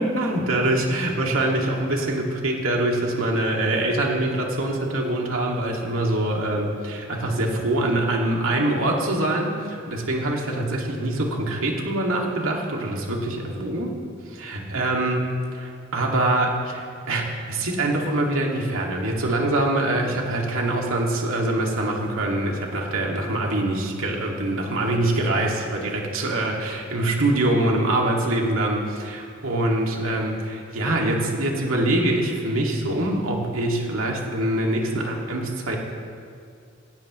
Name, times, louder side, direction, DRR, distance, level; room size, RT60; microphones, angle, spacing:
voice 1, 0.0-13.9 14.3-35.8, right 1 dB, 85° right, -1 dB, 2.1 m, -24 dB
18.0 x 16.0 x 3.1 m, 2.4 s
head